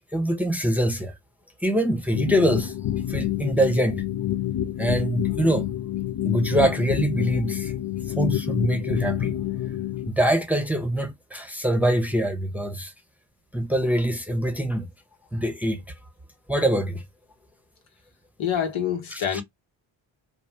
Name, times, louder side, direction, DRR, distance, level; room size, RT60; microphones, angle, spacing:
voice 1, 0.1-1.1 1.6-2.7 3.1-4.0 4.8-5.7 6.2-9.4 10.1-12.9 13.5-14.9 15.3-15.8 16.5-17.0 19.1-19.4, right 1 dB, 5° right, 0.8 m, -24 dB
sound 1, 2.1-10.1, left 12 dB, 50° left, 0.6 m, -28 dB
voice 2, 18.4-19.4, left 8 dB, 70° left, 1.1 m, -26 dB
2.6 x 2.1 x 3.2 m
cardioid pair, 55°, 49 cm